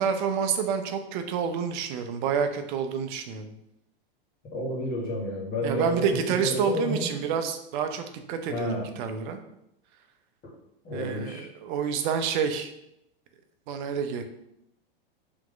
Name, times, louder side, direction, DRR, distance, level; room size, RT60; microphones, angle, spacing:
voice 1, 0.0-3.5 5.6-9.4 10.9-12.7 13.7-14.2, right 7 dB, 55° right, 7 dB, 0.6 m, -28 dB
voice 2, 4.5-7.1 8.5-8.9 10.4-10.5 10.8-11.5, left 1 dB, 30° left, -3 dB, 1.6 m, -30 dB
3.5 x 3.0 x 3.8 m, 0.80 s
hypercardioid pair, 115°, 29 cm